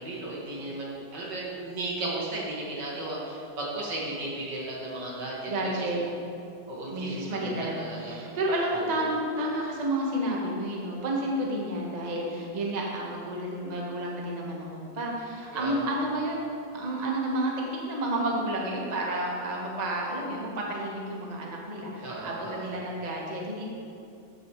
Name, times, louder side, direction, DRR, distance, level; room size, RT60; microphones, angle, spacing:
voice 1, 0.0-5.9 6.7-8.2 8.7-9.0 15.5-15.8 22.0-22.7, right 2 dB, 65° right, -4 dB, 2.3 m, -35 dB
voice 2, 5.5-6.1 6.9-16.4 16.7-17.5 17.9-23.6, right 1 dB, 25° right, -2 dB, 1.0 m, -31 dB
13.5 x 6.9 x 3.1 m, 2.6 s
omnidirectional pair, 2.1 m